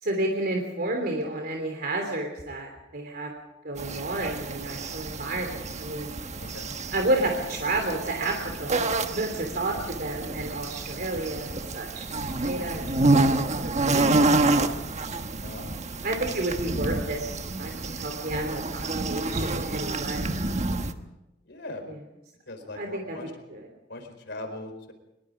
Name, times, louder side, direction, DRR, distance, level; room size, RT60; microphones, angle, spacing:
voice 1, 0.0-3.3 3.6-6.1 6.9-8.8 9.1-12.8 13.1-14.7 16.0-17.2 17.6-20.3 21.9-22.0 22.7-23.7, right 2 dB, 55° right, 2 dB, 3.1 m, -31 dB
sound 1, 3.8-20.9, right 2 dB, 40° right, 1.3 m, -28 dB
voice 2, 6.4-6.7 15.4-15.7 21.4-21.8 22.5-23.3 23.9-24.9, left 2 dB, 65° left, 6 dB, 4.4 m, -40 dB
24.0 x 22.5 x 5.1 m, 0.93 s
head